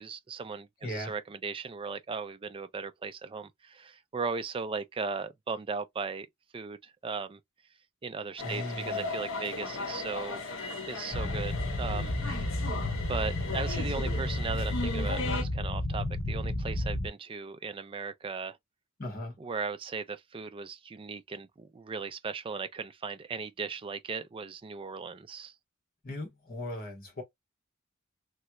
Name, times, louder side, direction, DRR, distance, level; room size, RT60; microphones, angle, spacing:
voice 1, 0.0-6.3 6.5-7.4 8.0-10.4 10.9-12.1 13.1-18.6 19.4-25.5, right 5 dB, 25° right, 0.4 m, -37 dB
voice 2, 0.8-1.1 8.4-9.0 19.0-19.4 26.0-27.2, left 1 dB, 45° left, 1.5 m, -38 dB
sound 1, 8.4-15.4, left 3 dB, 70° left, 1.0 m, -37 dB
sound 2, 11.1-17.1, left 1 dB, 30° left, 0.7 m, -32 dB
3.2 x 2.3 x 2.9 m
head